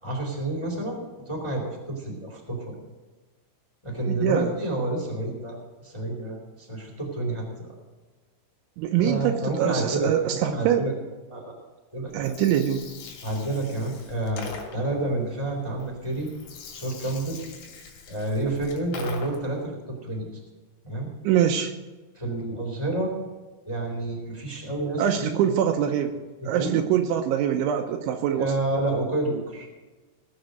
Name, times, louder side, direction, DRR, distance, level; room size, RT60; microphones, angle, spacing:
voice 1, 0.0-2.8 3.8-7.7 9.0-10.9 11.3-11.5 11.9-12.3 13.2-16.3 16.7-17.4 18.1-20.3 20.8-21.1 22.1-23.1 23.6-25.3 26.4-26.8 28.3-29.7, right 2 dB, 10° left, -1 dB, 2.3 m, -29 dB
voice 2, 4.1-4.5 8.8-10.8 12.1-12.8 21.2-21.7 25.0-26.1 26.5-28.5, right 10 dB, 80° right, 5 dB, 3.1 m, -24 dB
Gurgling, 12.1-19.6, left 4 dB, 80° left, 5.4 m, -42 dB
19.0 x 8.0 x 6.5 m, 1.3 s
omnidirectional pair, 5.8 m